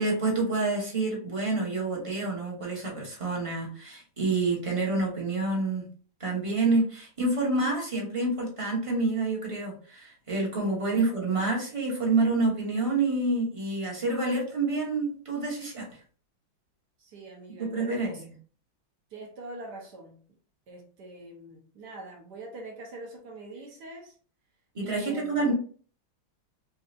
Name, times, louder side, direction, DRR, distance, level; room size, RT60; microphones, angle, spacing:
voice 1, 0.0-5.8 6.2-15.8 17.6-18.1 24.7-25.5, right 3 dB, 25° right, 0.8 m, -28 dB
voice 2, 17.0-18.3 19.1-20.2 20.7-24.1 24.8-25.5, right 2 dB, 65° right, 1.3 m, -43 dB
4.4 x 2.8 x 2.4 m
omnidirectional pair, 2.1 m